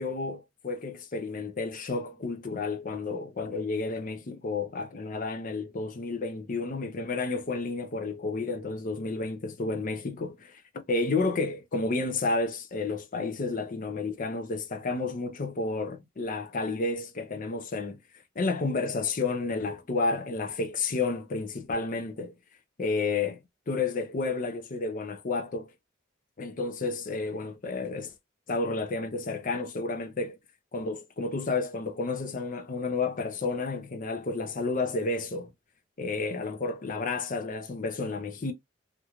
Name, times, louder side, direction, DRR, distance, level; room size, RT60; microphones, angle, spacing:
voice 1, 0.0-10.6 10.9-18.0 18.4-22.3 22.8-23.4 23.7-25.7 26.4-28.1 28.5-30.4 30.7-35.5 36.0-38.5, left 3 dB, 45° left, 0.6 m, -31 dB
2.9 x 2.5 x 2.2 m
head